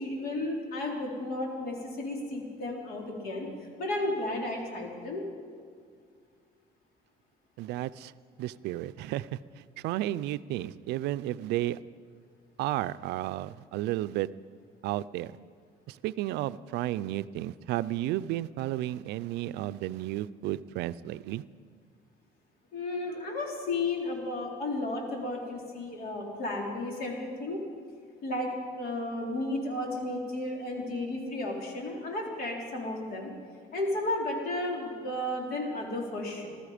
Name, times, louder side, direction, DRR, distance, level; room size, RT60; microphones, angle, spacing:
voice 1, 0.0-3.5 3.8-5.2 22.7-27.6 28.2-28.5 28.8-33.3 33.7-36.5, left 2 dB, 60° left, -1 dB, 3.7 m, -33 dB
voice 2, 7.6-8.1 8.4-9.4 9.8-11.8 12.6-14.3 14.8-15.3 15.9-21.4, right 14 dB, 85° right, 16 dB, 0.4 m, -32 dB
20.0 x 13.0 x 5.1 m, 2.1 s
cardioid pair, 110°, 17 cm